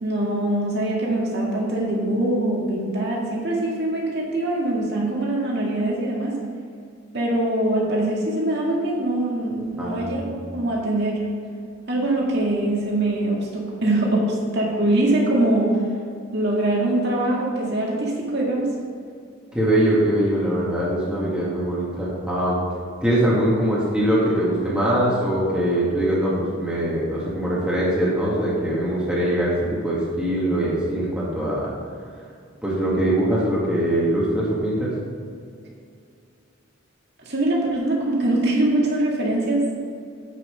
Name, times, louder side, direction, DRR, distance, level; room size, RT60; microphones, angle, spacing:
voice 1, 0.0-6.4 7.1-11.2 11.9-15.8 16.3-18.7 37.2-39.8, right 1 dB, 50° right, -3 dB, 2.1 m, -23 dB
voice 2, 19.5-22.6 23.0-31.7 32.6-34.9, right 1 dB, 5° right, -7 dB, 1.7 m, -22 dB
8.4 x 5.9 x 5.1 m, 2.3 s
head